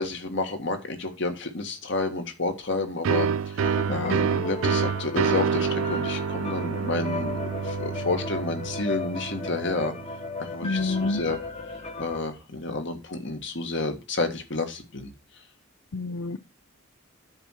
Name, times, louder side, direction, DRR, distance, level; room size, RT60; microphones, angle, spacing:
voice 1, 0.0-9.9 10.4-11.4 12.0-15.1, left 3 dB, 60° left, 1.7 m, -30 dB
sound 1, 3.0-10.5, right 6 dB, 75° right, 0.4 m, -28 dB
sound 2, 3.6-12.2, left 3 dB, 30° left, 1.1 m, -35 dB
voice 2, 10.6-11.2 15.9-16.4, left 3 dB, 80° left, 0.6 m, -28 dB
9.9 x 4.3 x 6.4 m
head